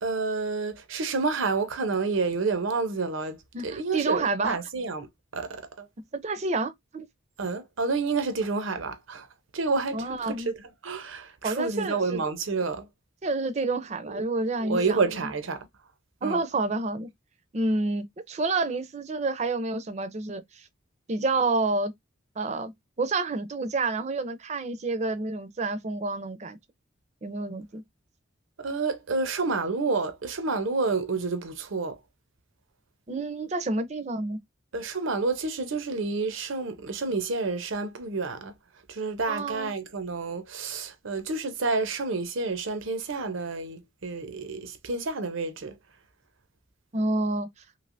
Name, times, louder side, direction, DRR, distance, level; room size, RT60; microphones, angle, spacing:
voice 1, 0.0-3.4 3.6-5.1 5.3-5.9 7.4-9.3 9.5-10.6 10.8-12.9 14.1-14.2 14.6-15.7 16.2-16.4 28.6-32.0 34.7-38.5 38.9-45.7, right 4 dB, 85° right, 0.7 m, -29 dB
voice 2, 3.5-4.6 6.1-7.1 9.9-10.5 11.4-12.2 13.2-15.3 16.2-17.1 17.5-20.7 21.1-21.9 22.4-22.7 23.0-26.6 27.2-27.8 33.1-34.4 39.3-39.7 46.9-47.5, right 3 dB, 35° right, 0.5 m, -29 dB
3.2 x 2.9 x 2.5 m
head